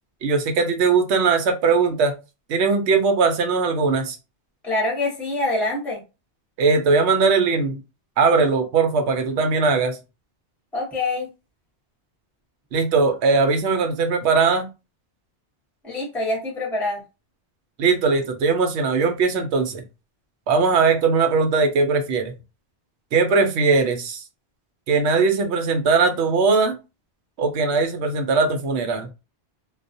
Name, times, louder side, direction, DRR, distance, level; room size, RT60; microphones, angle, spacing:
voice 1, 0.2-2.1 2.5-4.2 6.6-7.8 8.2-10.0 12.7-14.7 17.8-19.8 20.5-22.3 23.1-24.2 24.9-26.8 27.4-29.1, right 4 dB, 75° right, 0.8 m, -20 dB
voice 2, 4.6-6.0 10.7-11.3 15.8-17.0, left 2 dB, ahead, 0.8 m, -25 dB
2.3 x 2.0 x 2.6 m
omnidirectional pair, 1.1 m